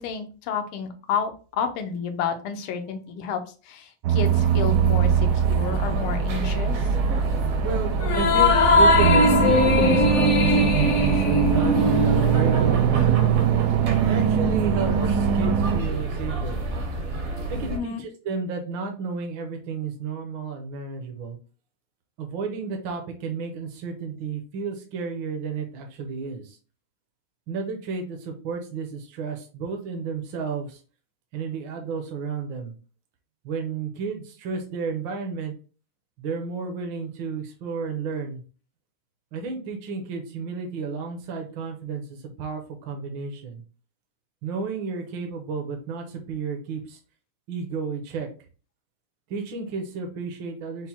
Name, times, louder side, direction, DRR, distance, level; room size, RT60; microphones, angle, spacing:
voice 1, 0.0-3.4 3.7-6.7 17.7-18.0, left 6 dB, 85° left, 6 dB, 1.5 m, -30 dB
sound 1, 4.0-15.8, right 9 dB, 90° right, 0.8 m, -23 dB
sound 2, 4.2-17.8, right 3 dB, 50° right, 0.8 m, -28 dB
voice 2, 7.6-13.3 14.0-16.6 17.5-21.4 22.2-26.6 27.5-30.8 31.3-32.7 33.4-35.5 36.2-38.4 39.3-43.6 44.4-47.0 47.5-48.3 49.3-50.9, right 5 dB, 70° right, 3 dB, 1.5 m, -32 dB
sound 3, 8.0-12.7, left 3 dB, 60° left, 0.7 m, -20 dB
5.8 x 2.1 x 4.2 m, 0.37 s
omnidirectional pair, 2.3 m